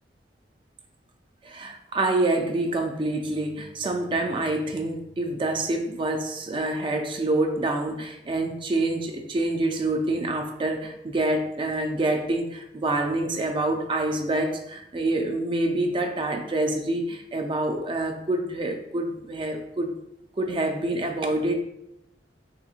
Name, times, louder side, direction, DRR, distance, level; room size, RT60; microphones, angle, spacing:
voice 1, 1.4-19.9 20.4-21.6, right 2 dB, 30° right, 4 dB, 0.3 m, -27 dB
3.4 x 2.9 x 2.4 m, 0.83 s
head